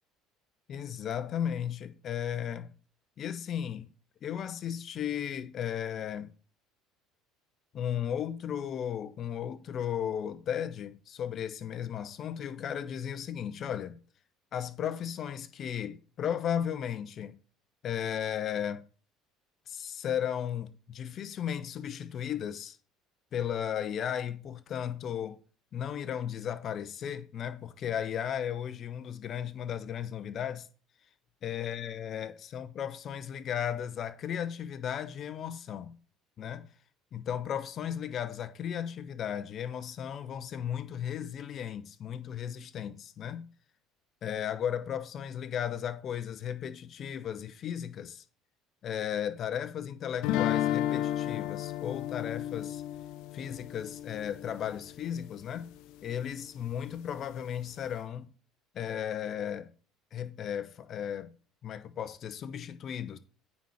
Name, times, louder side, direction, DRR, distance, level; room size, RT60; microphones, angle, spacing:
voice 1, 0.7-2.7 3.2-3.9 4.2-6.3 7.7-14.0 14.5-17.3 17.8-18.8 19.7-22.8 23.3-25.4 25.7-30.7 31.4-35.9 36.4-36.7 37.1-43.4 44.2-48.2 48.8-52.8 53.3-55.7 56.0-58.3 58.7-59.7 60.1-61.3 61.6-63.2, left 9 dB, 50° left, 0.8 m, -35 dB
sound 1, 50.2-55.2, left 12 dB, 65° left, 0.4 m, -33 dB
9.2 x 4.2 x 4.9 m
hypercardioid pair, 65°, 0 cm